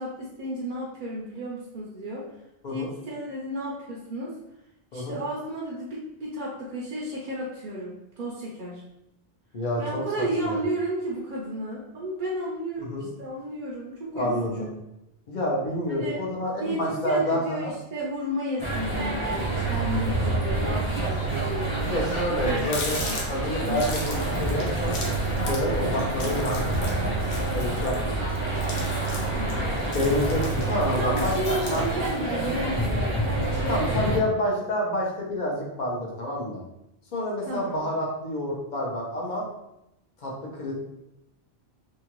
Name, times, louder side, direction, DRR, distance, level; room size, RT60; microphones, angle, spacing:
voice 1, 0.0-2.3 2.7-4.3 4.9-8.8 9.8-14.7 15.9-16.2 16.6-21.9 22.4-23.2 23.6-23.9 29.3-29.6 31.0-34.6 37.5-37.8, right 1 dB, 55° right, -5 dB, 0.6 m, -33 dB
voice 2, 9.5-10.0 10.4-10.6 12.8-13.1 14.1-14.5 15.3-17.7 21.1-21.3 21.9-23.0 23.3-25.0 25.5-27.0 27.5-28.3 29.9-31.8 32.3-32.5 33.7-36.6 37.1-39.4 40.2-40.7, left 1 dB, 50° left, -2 dB, 0.8 m, -28 dB
sound 1, 18.6-34.2, right 2 dB, 15° right, 0.7 m, -27 dB
Water tap faucet, 21.8-21.9 22.1-32.2, left 2 dB, 80° left, 0.9 m, -37 dB
2.7 x 2.3 x 2.9 m, 0.86 s
omnidirectional pair, 1.1 m